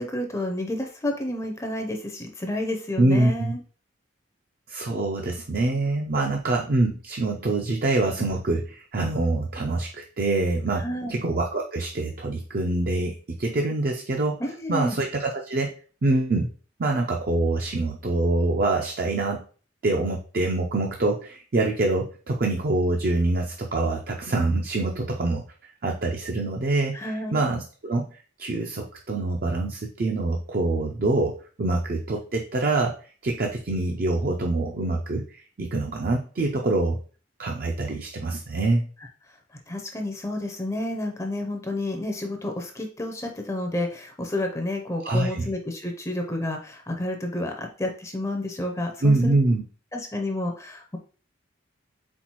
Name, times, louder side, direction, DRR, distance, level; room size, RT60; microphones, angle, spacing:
voice 1, 0.0-3.6 10.8-11.2 14.4-15.0 26.9-27.4 39.7-49.4 49.9-51.0, left 1 dB, 15° left, 3 dB, 0.5 m, -30 dB
voice 2, 3.0-3.5 4.7-14.4 14.7-15.7 16.0-16.5 16.8-19.4 19.8-28.1 28.4-33.0 33.2-37.0 37.4-38.9 45.0-45.5 49.0-49.6, right 2 dB, 45° right, 1 dB, 0.4 m, -25 dB
4.3 x 4.0 x 2.9 m, 0.40 s
head